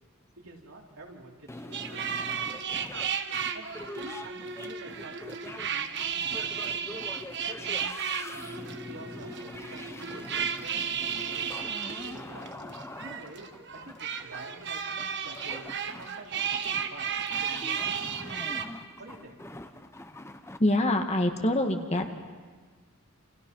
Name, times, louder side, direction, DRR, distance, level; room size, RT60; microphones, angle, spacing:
voice 1, 0.4-2.7 3.5-7.1 7.4-7.9 8.5-11.5 11.8-12.6 13.0-18.6 19.0-19.4, right 2 dB, 75° right, -1 dB, 4.3 m, -48 dB
sound 1, 1.5-20.6, left 1 dB, 10° left, 0.9 m, -44 dB
sound 2, 1.7-18.6, right 7 dB, 55° right, 1.4 m, -34 dB
voice 2, 20.6-22.2, left 1 dB, 30° left, 4 dB, 1.8 m, -25 dB
29.0 x 28.5 x 5.6 m, 1.5 s
head